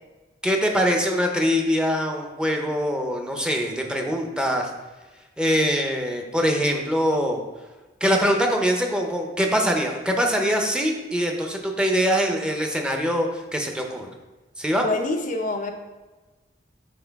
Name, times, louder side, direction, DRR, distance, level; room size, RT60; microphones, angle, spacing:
voice 1, 0.4-4.7 5.4-7.4 8.0-14.1 14.6-14.8, equal, 5° right, 2 dB, 0.6 m, -23 dB
voice 2, 14.8-15.7, left 2 dB, 45° left, 4 dB, 0.5 m, -26 dB
5.8 x 4.8 x 3.5 m, 1.2 s
head